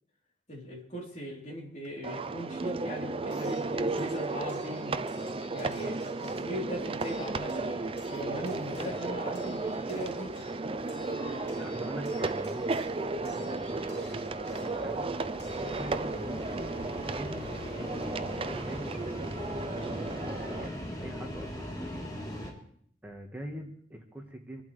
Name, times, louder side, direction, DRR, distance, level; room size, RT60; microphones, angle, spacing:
voice 1, 0.5-5.0 5.5-7.7 8.1-10.4, equal, 40° left, -2 dB, 3.6 m, -39 dB
sound 1, 1.8-1.9 3.3-16.3 17.6-17.7 18.0-18.1, left 4 dB, 75° left, 6.5 m, -55 dB
sound 2, 2.0-20.7, right 3 dB, 30° right, 0.5 m, -34 dB
sound 3, 6.4-22.5, equal, 20° left, 3.5 m, -42 dB
voice 2, 11.6-15.1 15.4-19.2 19.5-22.0 23.0-24.6, equal, 10° right, 1 dB, 1.6 m, -44 dB
27.5 x 12.0 x 3.3 m, 0.63 s
head